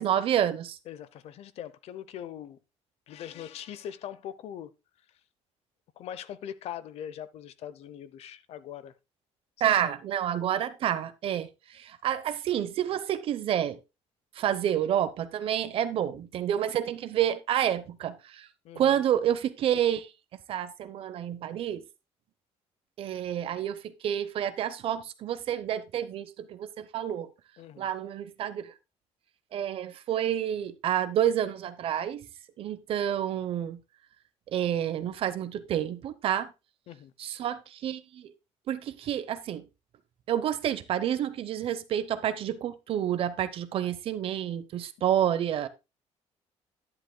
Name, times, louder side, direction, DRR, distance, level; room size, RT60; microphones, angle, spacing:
voice 1, 0.0-0.8 9.6-13.8 14.3-18.5 18.7-20.1 20.5-21.8 23.0-27.3 27.8-28.7 29.5-32.3 32.6-33.8 34.5-36.5 37.2-38.3 38.7-39.6 40.3-45.7, right 10 dB, 50° right, 0.9 m, -29 dB
voice 2, 0.9-2.6 3.1-4.7 6.0-8.9 18.6-19.0 27.6-27.9 36.9-37.1, left 10 dB, 55° left, 0.7 m, -41 dB
11.0 x 10.0 x 2.2 m
cardioid pair, 175°, 12 cm